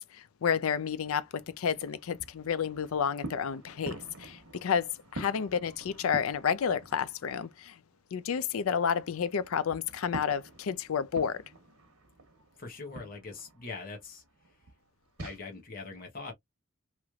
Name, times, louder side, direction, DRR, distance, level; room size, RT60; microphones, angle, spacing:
voice 1, 0.1-7.7 8.1-11.4, left 7 dB, 75° left, 0.4 m, -30 dB
sound 1, 0.7-7.6 7.9-15.4, right 2 dB, 90° right, 1.0 m, -47 dB
voice 2, 12.6-14.2 15.2-16.3, left 3 dB, 40° left, 0.9 m, -42 dB
3.1 x 3.0 x 2.3 m
head